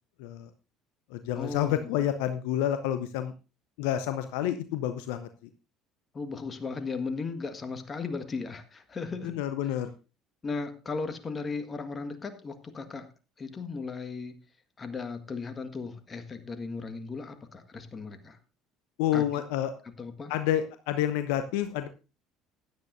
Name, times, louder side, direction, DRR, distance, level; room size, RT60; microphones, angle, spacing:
voice 1, 0.2-0.5 1.1-3.3 3.8-5.5 9.2-9.9 19.0-19.7 20.3-21.9, left 11 dB, 65° left, 10 dB, 0.7 m, -29 dB
voice 2, 1.4-1.9 6.1-9.4 10.4-13.0 13.4-14.4 14.8-18.4 19.1-19.2 20.0-20.3, left 4 dB, 30° left, 9 dB, 1.6 m, -36 dB
16.0 x 10.5 x 2.6 m, 0.32 s
figure-of-eight pair, 60°, 0 cm